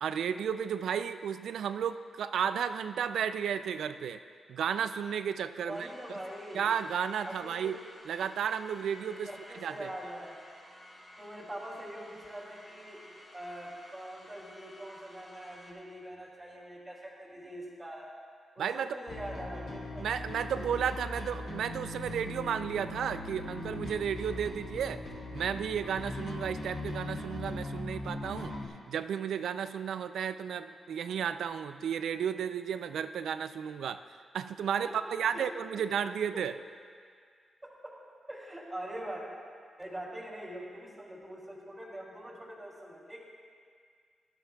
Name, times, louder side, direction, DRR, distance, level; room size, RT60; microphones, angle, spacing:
voice 1, 0.0-4.2 4.5-5.9 6.5-7.8 8.1-9.3 9.5-9.9 18.6-19.0 20.0-25.0 25.3-28.5 28.9-34.0 34.3-36.5, right 8 dB, 85° right, 11 dB, 0.4 m, -33 dB
voice 2, 5.6-6.7 7.4-7.8 9.1-10.3 11.2-13.0 13.3-18.1 18.5-20.1 34.8-35.8 36.3-36.4 37.6-38.0 38.3-39.2 39.8-43.2, right 1 dB, 15° right, -3 dB, 2.8 m, -43 dB
sound 1, 5.7-15.7, left 1 dB, 40° left, 3.3 m, -53 dB
Bass guitar, 19.1-28.7, left 2 dB, 80° left, 2.3 m, -40 dB
16.5 x 12.0 x 2.3 m, 2.1 s
cardioid pair, 105°, 0 cm